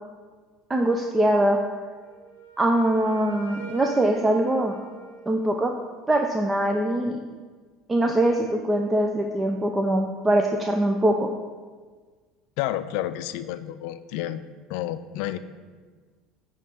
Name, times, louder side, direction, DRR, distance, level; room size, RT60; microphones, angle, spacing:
voice 1, 0.7-1.6 2.6-4.7 5.3-5.7 6.1-7.2 7.9-11.3, right 1 dB, 20° right, 3 dB, 0.6 m, -22 dB
Wind instrument woodwind instrument, 2.0-5.9, right 3 dB, 75° right, 1.5 m, -44 dB
voice 2, 12.6-14.4 14.7-15.4, left 13 dB, 65° left, 12 dB, 0.4 m, -30 dB
9.3 x 3.2 x 5.6 m, 1.5 s
hypercardioid pair, 75°, 0 cm